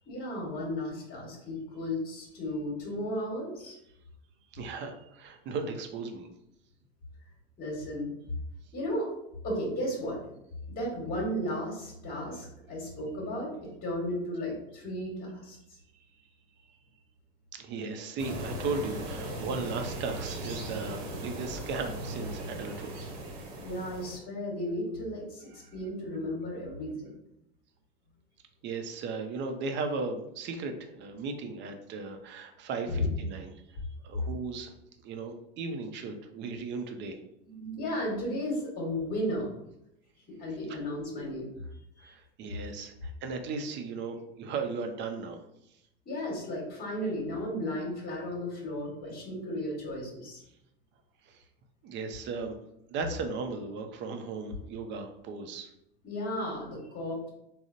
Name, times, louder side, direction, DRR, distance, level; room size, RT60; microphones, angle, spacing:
voice 1, 0.1-3.8 7.6-8.1 8.7-9.1 9.4-10.2 10.7-13.5 13.8-15.6 23.6-27.1 32.9-33.1 37.5-39.5 40.4-41.5 42.0-42.1 46.0-50.4 56.0-57.3, left 1 dB, 30° left, -2 dB, 1.2 m, -34 dB
voice 2, 4.5-6.3 17.5-22.9 25.6-25.7 28.6-33.8 34.0-34.7 35.0-37.2 40.7-40.8 42.0-45.4 51.2-51.4 51.8-52.5 52.9-55.7, right 4 dB, 40° right, 6 dB, 0.5 m, -36 dB
sound 1, 18.2-24.2, right 1 dB, 60° right, 0.8 m, -38 dB
3.7 x 2.0 x 2.5 m, 0.80 s
hypercardioid pair, 80°, 30 cm